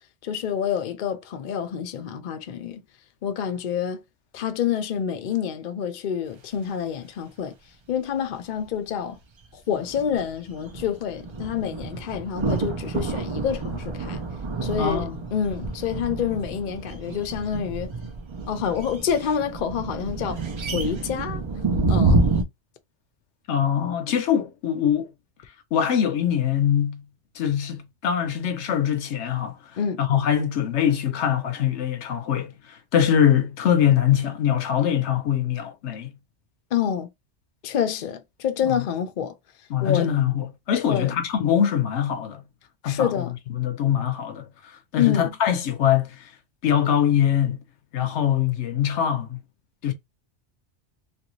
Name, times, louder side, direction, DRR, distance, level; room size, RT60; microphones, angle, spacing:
voice 1, 0.2-2.8 3.2-4.0 4.3-7.5 7.9-9.2 9.5-14.2 14.6-17.9 18.5-20.4 20.7-21.4 21.9-22.3 29.8-30.0 36.7-37.1 37.6-39.4 39.8-40.1 40.9-41.1 42.8-43.3 45.0-45.3, left 8 dB, 55° left, 0.6 m, -27 dB
sound 1, 9.7-22.4, right 3 dB, 45° right, 0.4 m, -28 dB
voice 2, 14.8-15.2 23.5-25.1 25.7-27.1 27.4-29.5 30.0-32.5 32.9-36.1 38.6-38.8 39.7-42.4 42.8-43.2 43.6-44.5 44.9-46.2 46.6-47.6 47.9-49.4 49.8-49.9, left 9 dB, 85° left, 0.9 m, -23 dB
2.9 x 2.6 x 3.0 m
omnidirectional pair, 1.2 m